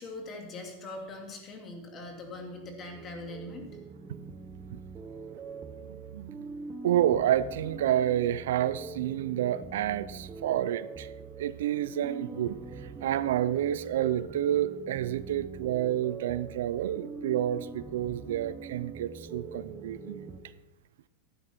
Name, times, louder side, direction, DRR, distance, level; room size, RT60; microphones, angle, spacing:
voice 1, 0.0-3.7, left 2 dB, 30° left, 2 dB, 2.5 m, -41 dB
sound 1, 2.1-20.4, right 4 dB, 25° right, 0.8 m, -43 dB
voice 2, 6.8-11.1 11.4-12.6 13.0-20.3, right 11 dB, 80° right, 16 dB, 0.5 m, -29 dB
12.0 x 9.4 x 4.4 m, 1.0 s
supercardioid pair, 135°, 0 cm